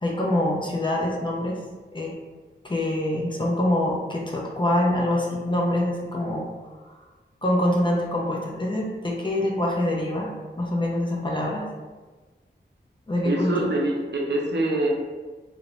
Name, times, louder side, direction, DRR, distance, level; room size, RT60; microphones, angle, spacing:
voice 1, 0.0-1.6 1.9-2.2 2.6-6.5 6.8-7.0 7.4-11.7 13.1-13.7, left 1 dB, 25° left, -3 dB, 0.5 m, -25 dB
voice 2, 13.2-14.9, right 2 dB, 65° right, -1 dB, 0.5 m, -24 dB
2.4 x 2.0 x 3.0 m, 1.3 s
wide cardioid pair, 60°, 19 cm